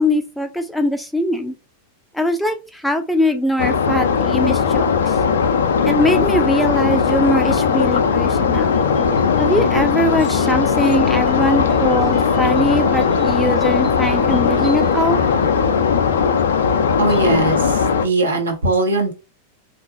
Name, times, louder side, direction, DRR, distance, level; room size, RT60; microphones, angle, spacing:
voice 1, 0.0-1.5 2.1-5.2 5.8-8.7 9.4-15.2, left 1 dB, 5° left, 6 dB, 0.5 m, -21 dB
sound 1, 3.6-18.1, left 6 dB, 65° left, 0.4 m, -18 dB
sound 2, 8.5-17.3, right 2 dB, 30° right, 1.1 m, -36 dB
voice 2, 17.0-19.1, right 2 dB, 75° right, 1 dB, 1.0 m, -20 dB
3.6 x 2.6 x 2.9 m, 0.29 s
figure-of-eight pair, 90°, 0 cm